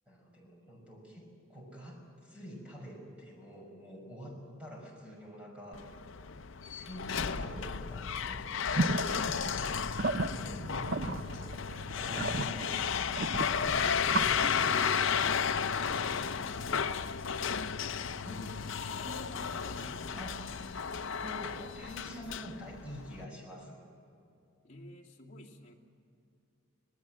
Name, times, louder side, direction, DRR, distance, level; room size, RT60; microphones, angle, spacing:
voice 1, 0.1-5.8 6.1-6.2 6.7-11.5 11.9-13.5 18.3-18.5 20.1-23.8, equal, 5° right, -2 dB, 6.1 m, -47 dB
sound 1, 5.7-23.2, left 6 dB, 70° left, 0.6 m, -33 dB
sound 2, 8.8-14.3, right 2 dB, 50° right, 0.7 m, -35 dB
sound 3, 13.6-15.6, left 1 dB, 20° left, 1.0 m, -49 dB
voice 2, 13.8-15.1 15.8-17.0 19.0-20.2 24.6-25.7, left 1 dB, 40° left, -3 dB, 2.6 m, -48 dB
27.0 x 19.5 x 7.8 m, 2.6 s
head